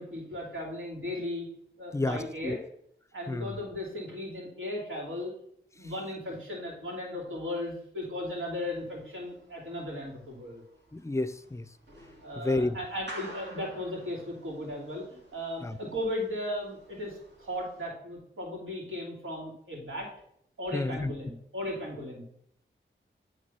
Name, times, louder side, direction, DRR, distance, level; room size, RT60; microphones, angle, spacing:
voice 1, 0.0-1.5 1.8-2.6 3.1-5.3 5.7-10.6 12.2-20.1 20.6-22.3, left 1 dB, 80° right, 2.9 m, -36 dB
sound 1, 8.3-17.9, right 1 dB, 60° right, 2.5 m, -51 dB
voice 2, 10.9-11.6 12.4-12.8 15.6-15.7 20.7-21.1, left 2 dB, 15° left, 0.4 m, -29 dB
8.4 x 3.7 x 5.5 m
cardioid pair, 50°, 21 cm